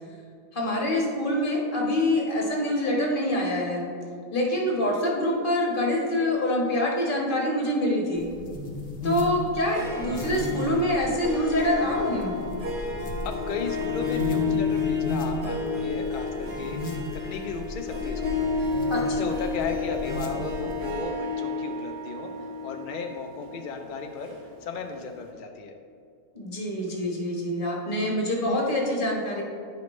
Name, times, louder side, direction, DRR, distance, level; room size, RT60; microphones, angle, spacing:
voice 1, 0.5-3.9 4.3-8.3 9.0-12.4 18.9-19.3 26.3-29.4, left 1 dB, 35° left, -2 dB, 1.4 m, -25 dB
sound 1, 8.2-21.0, equal, 55° left, 1.0 m, -36 dB
Harp, 9.6-24.9, left 4 dB, 45° right, 1.4 m, -31 dB
voice 2, 13.2-16.8 17.1-18.6 19.1-24.3 24.6-25.7, left 5 dB, 80° left, 4 dB, 0.4 m, -35 dB
10.0 x 5.2 x 3.1 m, 2.4 s
omnidirectional pair, 1.5 m